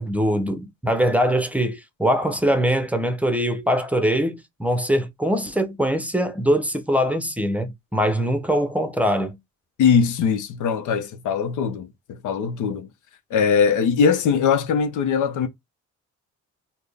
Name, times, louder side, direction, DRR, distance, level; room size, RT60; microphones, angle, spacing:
voice 1, 0.0-9.4, equal, 5° right, 0.6 m, -22 dB
voice 2, 9.8-11.9 12.2-12.9 13.3-15.5, left 6 dB, 80° left, 0.7 m, -21 dB
4.0 x 2.2 x 3.3 m
cardioid pair, 90°, 30 cm